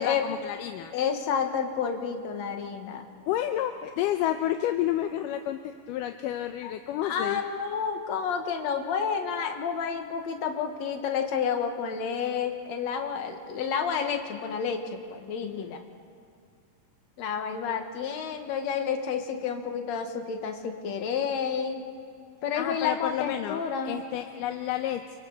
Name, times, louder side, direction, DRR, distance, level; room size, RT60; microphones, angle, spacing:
voice 1, 0.0-0.9 3.3-7.4 15.4-15.7 22.6-25.2, left 12 dB, 80° left, 6 dB, 2.3 m, -30 dB
voice 2, 0.9-3.1 6.6-6.7 7.0-15.8 17.2-21.8 22.4-24.0, left 6 dB, 60° left, 4 dB, 2.5 m, -30 dB
28.5 x 24.5 x 4.1 m, 2.4 s
omnidirectional pair, 3.8 m